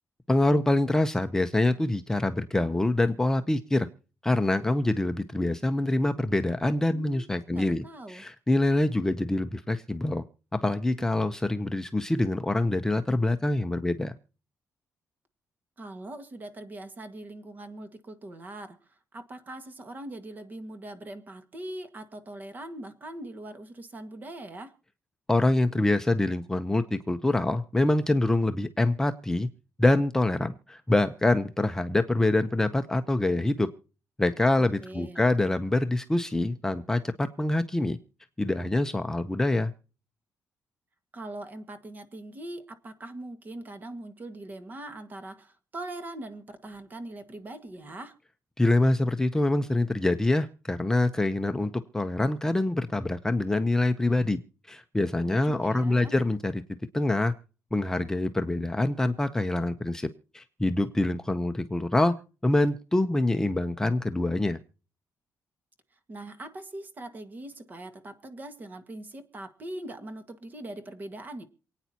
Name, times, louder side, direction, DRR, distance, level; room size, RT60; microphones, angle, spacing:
voice 1, 0.3-3.9 4.2-10.2 10.5-14.2 25.3-29.5 29.8-33.7 34.2-38.0 38.4-39.7 48.6-54.4 54.7-56.6 56.9-57.3 57.7-60.1 60.3-62.1 62.4-64.6, left 2 dB, 10° left, 8 dB, 0.7 m, -25 dB
voice 2, 6.9-7.3 7.5-8.2 15.8-24.7 34.6-35.2 41.1-48.1 55.2-56.1 66.1-71.4, right 1 dB, 30° right, 10 dB, 1.7 m, -41 dB
28.0 x 9.3 x 2.8 m, 0.37 s
cardioid pair, 140°, 6 cm